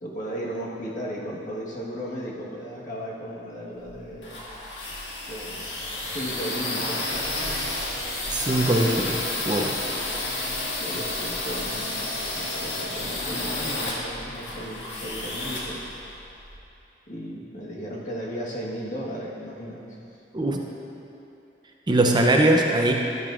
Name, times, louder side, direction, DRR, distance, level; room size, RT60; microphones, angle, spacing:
voice 1, 0.0-4.3 5.3-7.0 10.8-12.0 12.3-15.9 17.1-20.0, equal, 45° left, -4 dB, 1.4 m, -35 dB
sound 1, 3.8-16.6, left 2 dB, 85° left, 1.8 m, -31 dB
voice 2, 8.3-9.8 20.3-20.6 21.9-22.9, right 1 dB, 25° right, 1 dB, 0.6 m, -21 dB
12.5 x 10.5 x 2.5 m, 2.9 s
head